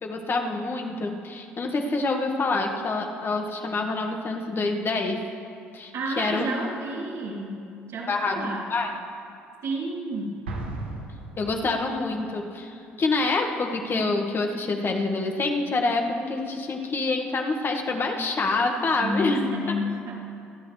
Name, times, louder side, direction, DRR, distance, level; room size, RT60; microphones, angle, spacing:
voice 1, 0.0-5.2 5.7-6.5 8.1-8.9 11.4-19.4 19.7-19.8, left 3 dB, 40° left, 2 dB, 1.8 m, -27 dB
voice 2, 5.9-7.6 7.9-8.7 9.6-10.5 19.0-20.1, equal, 60° right, -4 dB, 3.4 m, -31 dB
Explosion, 10.4-12.1, right 2 dB, 90° right, 1.4 m, -36 dB
25.5 x 10.5 x 3.4 m, 2.4 s
hypercardioid pair, 55°, 6 cm